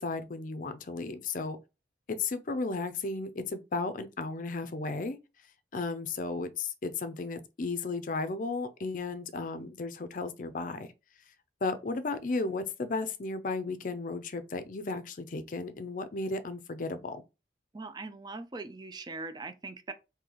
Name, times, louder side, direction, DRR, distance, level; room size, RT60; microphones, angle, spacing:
voice 1, 0.0-1.6 2.1-5.2 5.7-10.9 11.6-17.2, left 3 dB, 45° left, 0.5 m, -34 dB
voice 2, 17.7-19.9, right 3 dB, 25° right, 0.4 m, -41 dB
3.9 x 2.7 x 3.0 m
head